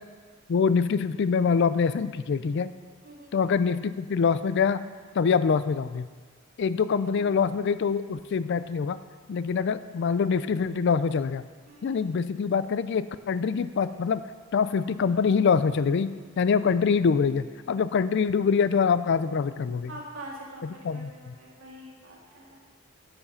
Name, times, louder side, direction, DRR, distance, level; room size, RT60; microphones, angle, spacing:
voice 1, 0.5-2.7 3.3-4.8 5.1-6.1 6.6-9.0 9.3-11.5 11.8-14.2 14.5-16.1 16.4-19.9 20.6-21.3, left 5 dB, 55° left, 14 dB, 0.4 m, -25 dB
voice 2, 3.0-3.3 7.0-7.3 11.7-12.0 19.9-20.6 20.9-22.6, right 1 dB, 70° right, -4 dB, 2.2 m, -44 dB
10.5 x 7.2 x 5.6 m, 1.5 s
head